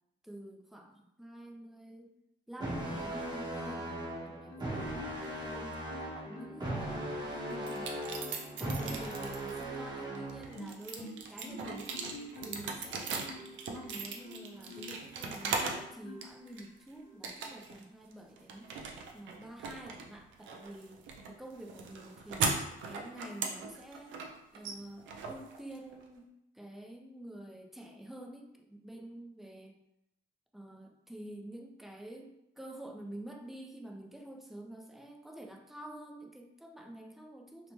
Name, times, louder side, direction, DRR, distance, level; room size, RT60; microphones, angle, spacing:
voice 1, 0.2-2.1 2.5-4.9 5.2-12.0 12.4-13.4 13.7-18.7 19.1-24.1 24.5-29.8 30.5-37.7, right 1 dB, ahead, 1 dB, 0.4 m, -48 dB
sound 1, 2.6-10.6, right 1 dB, 20° right, 0.8 m, -38 dB
Marimba xylophone, 4.5-5.5 5.9-7.7 8.2-9.1 9.6-15.1 15.6-16.5 17.0-17.3, left 1 dB, 70° left, 0.7 m, -49 dB
sound 2, 7.6-9.6 10.2-15.9 16.2-16.8 17.2-17.8 18.1-26.0, right 4 dB, 75° right, 0.5 m, -39 dB
2.8 x 2.0 x 3.0 m, 0.83 s
cardioid pair, 90°, 20 cm